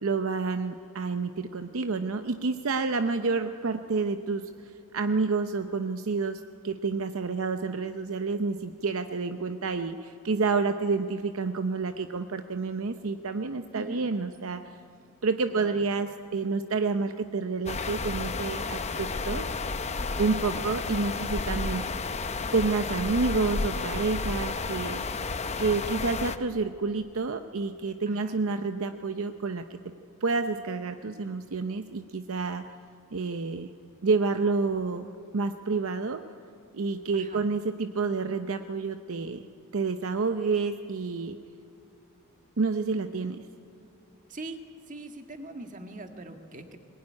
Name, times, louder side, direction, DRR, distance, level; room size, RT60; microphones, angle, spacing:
voice 1, 0.0-4.5 4.9-14.7 15.2-19.4 20.2-21.9 22.5-25.0 25.6-29.9 30.2-32.7 33.1-33.7 34.0-36.2 36.7-39.4 39.7-41.4 42.6-43.4, right 4 dB, 70° right, 8 dB, 0.7 m, -29 dB
voice 2, 13.7-14.1 15.5-15.8 20.5-20.8 28.1-28.4 37.1-37.5 44.3-44.6 44.9-46.8, right 2 dB, 35° right, 5 dB, 1.8 m, -42 dB
sound 1, 17.7-26.4, left 3 dB, 30° left, 0.7 m, -32 dB
21.0 x 20.0 x 9.7 m, 2.7 s
head